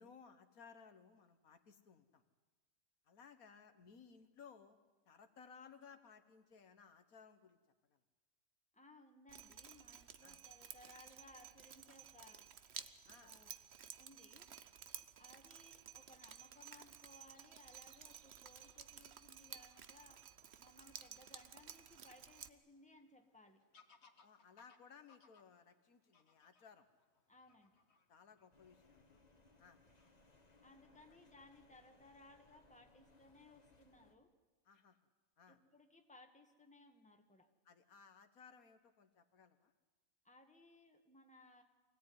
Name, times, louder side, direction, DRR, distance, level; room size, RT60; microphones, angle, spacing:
voice 1, 0.0-2.2 3.1-4.8 5.1-7.6 7.9-8.0 10.2-10.4 13.1-13.3 24.0-26.9 28.1-29.2 29.6-29.8 34.7-35.0 35.4-35.6 37.7-39.7, left 6 dB, 75° left, 9 dB, 1.8 m, -61 dB
voice 2, 8.7-12.4 13.2-13.5 14.0-14.5 15.2-20.2 20.6-23.6 27.3-27.7 30.6-34.3 35.5-37.5 40.2-41.6, left 2 dB, 5° left, 4 dB, 1.8 m, -63 dB
Drip, 9.3-22.5, right 8 dB, 50° right, 1.0 m, -55 dB
Fowl / Bird vocalization bird call bird song, 16.9-32.6, left 4 dB, 50° left, 1.7 m, -75 dB
sound 1, 28.5-34.1, left 3 dB, 30° left, 1.7 m, -69 dB
24.5 x 17.0 x 9.5 m, 1.3 s
omnidirectional pair, 1.5 m